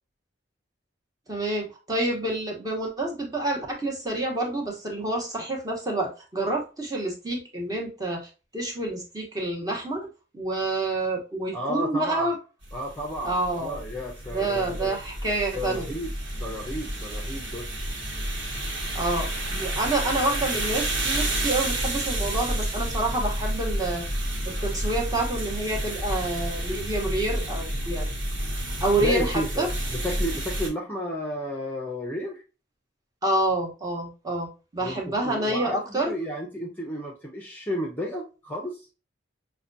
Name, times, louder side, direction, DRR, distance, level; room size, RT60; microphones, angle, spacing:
voice 1, 1.3-12.4 13.2-13.8 14.3-15.9 18.9-24.1 24.5-28.1 28.8-29.7 33.2-36.1, right 2 dB, 20° right, 0 dB, 0.9 m, -28 dB
voice 2, 11.5-12.3 12.7-15.0 15.5-17.7 29.0-32.4 34.8-38.9, equal, 10° left, 0 dB, 0.6 m, -32 dB
sound 1, 12.6-30.7, right 1 dB, 65° right, 1.2 m, -30 dB
5.7 x 2.2 x 2.6 m, 0.32 s
head